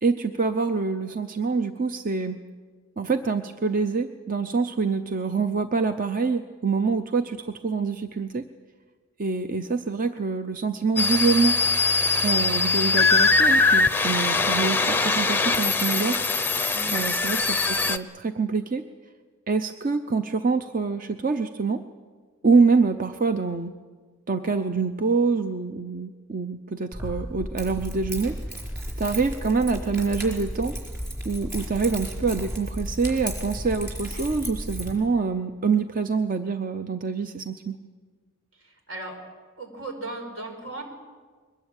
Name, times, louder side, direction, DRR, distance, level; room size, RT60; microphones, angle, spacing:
voice 1, 0.0-2.4 3.0-8.4 9.2-11.6 12.2-16.2 16.9-18.8 19.5-21.8 22.4-23.7 24.3-28.6 29.0-30.8 31.2-37.8, right 4 dB, 40° right, 8 dB, 0.6 m, -25 dB
sound 1, 11.0-18.0, left 4 dB, 10° left, 0.6 m, -22 dB
Keys jangling, 26.9-34.9, equal, 10° right, 4.6 m, -34 dB
voice 2, 38.5-39.2 39.6-40.8, right 2 dB, 70° right, 4 dB, 5.1 m, -37 dB
22.5 x 20.0 x 8.9 m, 1.5 s
head